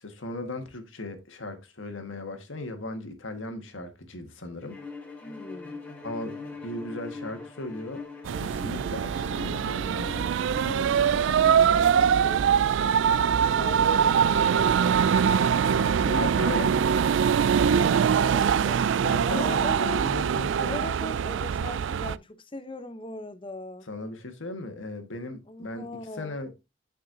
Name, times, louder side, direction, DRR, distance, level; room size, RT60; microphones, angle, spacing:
voice 1, 0.0-4.8 6.0-8.0 8.4-10.3 16.1-16.7 19.0-20.8 23.9-25.9 26.2-26.5, left 2 dB, 80° left, 1.6 m, -36 dB
Bowed string instrument, 4.7-11.3, left 4 dB, 10° left, 2.4 m, -42 dB
voice 2, 5.2-5.8 10.6-12.5 13.4-16.6 17.8-18.8 19.2-20.0 20.7-23.9 25.5-26.4, left 2 dB, 25° left, 0.8 m, -40 dB
sound 1, 8.2-22.2, right 7 dB, 70° right, 0.3 m, -23 dB
9.1 x 5.5 x 2.7 m
head